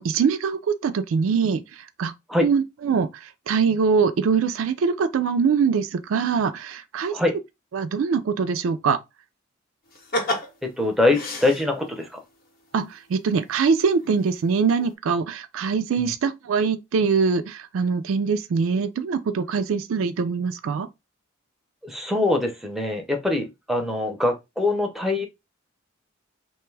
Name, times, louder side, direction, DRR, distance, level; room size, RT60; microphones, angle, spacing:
voice 1, 0.0-1.6 2.0-2.1 2.4-3.1 3.5-7.1 7.7-9.0 12.7-20.9, right 5 dB, 70° right, 0.3 m, -23 dB
sound 1, 9.9-12.1 13.4-13.5 14.0-14.5 14.8-14.9, left 1 dB, 45° left, 0.7 m, -30 dB
voice 2, 10.6-12.2 16.0-16.1 21.8-25.3, left 2 dB, ahead, 0.5 m, -23 dB
2.6 x 2.3 x 3.1 m
head